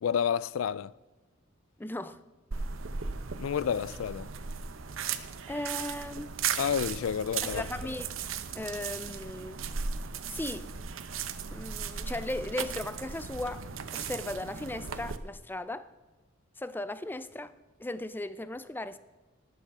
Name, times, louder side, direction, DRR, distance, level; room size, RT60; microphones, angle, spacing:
voice 1, 0.0-0.9 3.4-4.3 6.6-7.7, left 8 dB, 90° left, 0.4 m, -29 dB
voice 2, 1.8-2.2 5.5-6.4 7.4-8.1 8.5-9.6 10.3-10.7 11.5-13.6 13.9-15.9 16.6-17.5 17.8-19.0, left 1 dB, 10° left, 0.5 m, -37 dB
sound 1, 2.5-15.2, right 6 dB, 80° right, 0.8 m, -37 dB
19.0 x 6.7 x 6.0 m
head